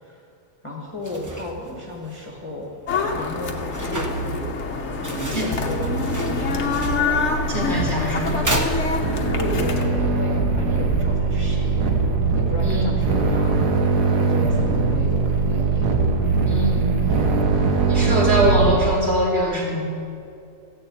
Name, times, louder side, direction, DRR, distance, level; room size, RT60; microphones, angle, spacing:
voice 1, 0.6-2.7 3.1-4.6 5.0-7.1 9.4-11.9 12.3-13.6 14.1-15.9 16.9-17.5 18.1-18.2, left 1 dB, 20° left, -3 dB, 1.6 m, -34 dB
sound 1, 0.9-9.4, right 1 dB, 15° right, 0.7 m, -34 dB
sound 2, 2.9-9.9, left 3 dB, 50° left, 1.3 m, -26 dB
sound 3, 4.8-18.7, right 4 dB, 80° right, 1.8 m, -22 dB
voice 2, 7.5-8.4 12.6-13.0 16.5-16.9 17.8-19.8, right 1 dB, 40° right, -5 dB, 3.3 m, -22 dB
15.0 x 6.7 x 8.6 m, 2.6 s
omnidirectional pair, 1.7 m